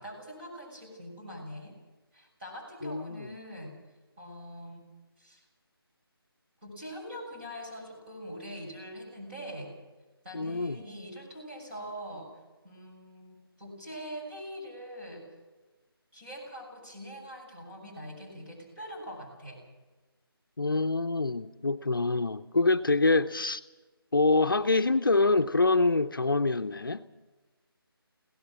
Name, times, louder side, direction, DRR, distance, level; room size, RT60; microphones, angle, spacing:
voice 1, 0.0-1.8 2.1-3.7 4.2-4.9 5.2-5.4 6.6-9.7 10.2-12.3 12.6-15.3 16.1-19.6, equal, 25° right, 6.7 m, -43 dB
voice 2, 2.8-3.3 10.3-10.8 20.6-23.6 24.1-27.1, left 3 dB, 60° left, 0.8 m, -25 dB
25.0 x 17.5 x 6.2 m
figure-of-eight pair, 155°, 13 cm